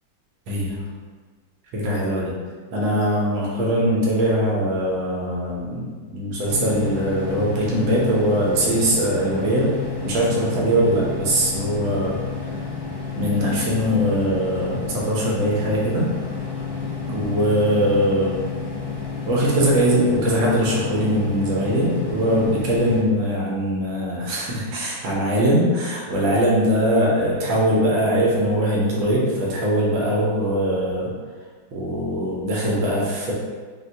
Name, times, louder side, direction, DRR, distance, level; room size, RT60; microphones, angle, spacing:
voice 1, 0.5-0.8 1.7-2.3 2.7-9.7 10.0-12.2 13.1-16.1 17.0-18.4 19.2-31.1 31.7-33.3, equal, 75° right, -5 dB, 1.5 m, -21 dB
sound 1, 6.5-23.0, left 5 dB, 80° left, 0.6 m, -31 dB
4.4 x 2.1 x 2.6 m, 1.5 s
omnidirectional pair, 2.2 m